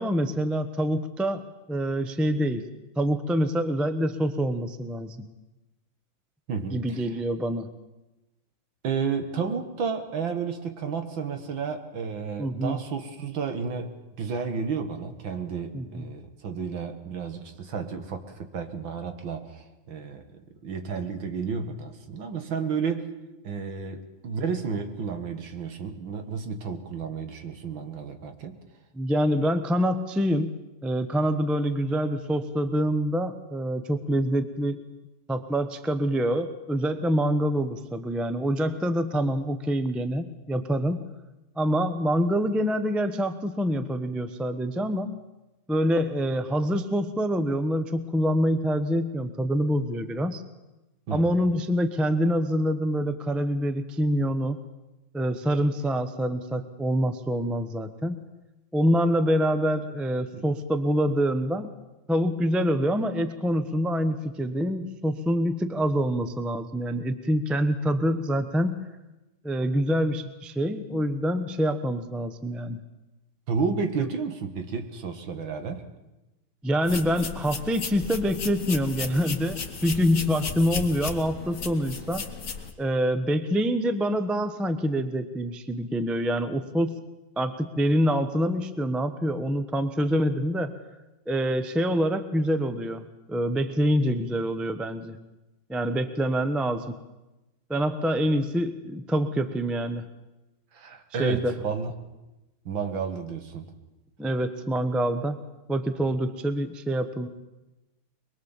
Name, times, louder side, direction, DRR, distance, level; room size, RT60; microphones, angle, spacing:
voice 1, 0.0-2.6 3.0-5.3 6.7-7.7 12.4-12.8 15.7-16.1 28.9-30.5 30.8-34.8 35.3-41.0 41.6-45.1 45.7-50.4 51.1-54.6 55.1-58.2 58.7-61.7 62.1-68.9 69.4-72.8 76.6-82.2 82.8-87.0 87.4-90.7 91.3-95.2 95.7-97.0 97.7-100.1 101.2-101.5 104.2-105.4 105.7-107.3, equal, ahead, 9 dB, 0.4 m, -26 dB
voice 2, 6.5-6.8 8.8-23.1 23.4-28.6 51.1-51.4 60.3-60.4 73.5-75.9 100.7-101.9 102.7-103.7, right 5 dB, 70° right, 7 dB, 2.3 m, -32 dB
sound 1, 76.8-82.7, left 5 dB, 45° left, 1.9 m, -35 dB
23.0 x 22.5 x 7.3 m, 1.0 s
omnidirectional pair, 2.2 m